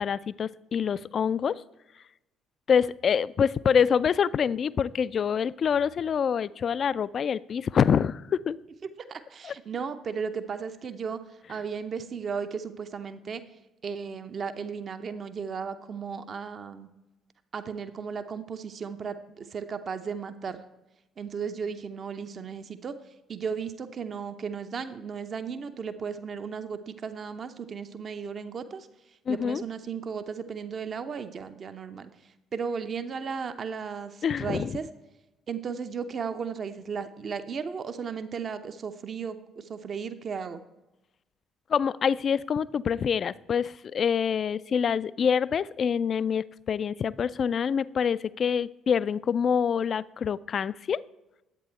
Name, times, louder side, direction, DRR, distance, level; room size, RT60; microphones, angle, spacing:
voice 1, 0.0-1.6 2.7-8.6 9.4-9.5 29.3-29.6 34.2-34.8 41.7-51.0, left 7 dB, 45° left, 19 dB, 0.3 m, -26 dB
voice 2, 9.0-11.2 11.5-13.4 13.8-16.9 17.5-20.6 21.2-22.9 23.3-28.9 29.3-32.1 32.5-34.9 35.5-40.6, right 6 dB, 45° right, 10 dB, 0.7 m, -35 dB
11.5 x 8.6 x 4.4 m, 1.0 s
figure-of-eight pair, 50°, 0 cm